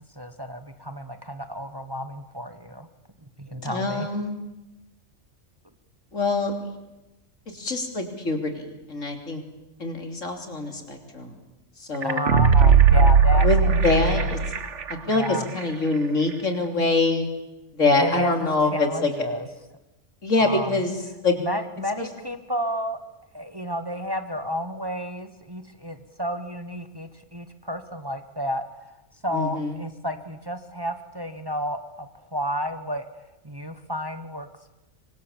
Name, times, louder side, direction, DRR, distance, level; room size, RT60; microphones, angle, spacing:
voice 1, 0.1-2.9 3.4-4.1 12.0-14.3 15.0-15.5 18.0-19.5 20.4-20.9 21.4-23.0 23.3-28.6 29.2-34.5, equal, 20° right, 9 dB, 1.2 m, -31 dB
voice 2, 3.6-4.4 6.1-6.5 7.5-9.4 9.8-11.3 11.9-12.3 13.4-13.6 13.8-14.4 15.1-17.3 17.7-19.1 20.2-21.0 21.2-21.3 22.0-22.1 29.3-29.8, left 3 dB, 80° left, 4 dB, 3.7 m, -24 dB
sound 1, 12.0-14.9 15.2-15.3, right 5 dB, 70° right, 1.6 m, -17 dB
27.0 x 23.5 x 7.4 m, 1.0 s
omnidirectional pair, 1.3 m